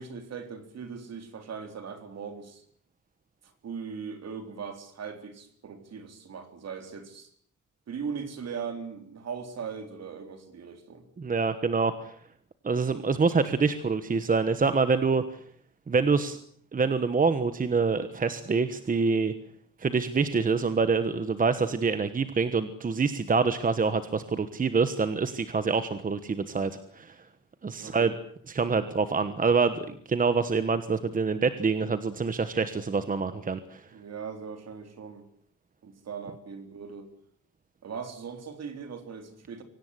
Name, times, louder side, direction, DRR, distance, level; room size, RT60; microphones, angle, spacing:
voice 1, 0.0-2.6 3.6-7.3 7.9-11.1 27.8-28.1 33.9-35.3 35.8-37.1 37.8-39.6, right 6 dB, 55° right, 7 dB, 4.0 m, -39 dB
voice 2, 11.2-12.2 12.6-15.4 15.9-16.4 16.7-19.3 19.8-27.2 27.6-28.1 28.5-33.9, right 4 dB, 25° right, 11 dB, 1.3 m, -26 dB
25.0 x 18.0 x 9.7 m, 0.62 s
wide cardioid pair, 180°, 32 cm